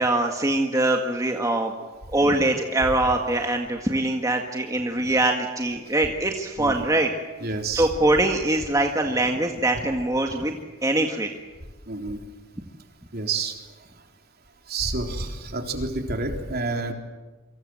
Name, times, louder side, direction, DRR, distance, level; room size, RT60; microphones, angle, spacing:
voice 1, 0.0-1.7 2.1-7.1 7.7-10.5 10.8-11.3, right 2 dB, 15° right, 2 dB, 1.9 m, -23 dB
voice 2, 7.4-7.9 11.9-12.2 13.1-13.5 14.7-16.9, right 3 dB, 50° right, 3 dB, 3.6 m, -29 dB
28.5 x 25.5 x 7.9 m, 1.2 s
head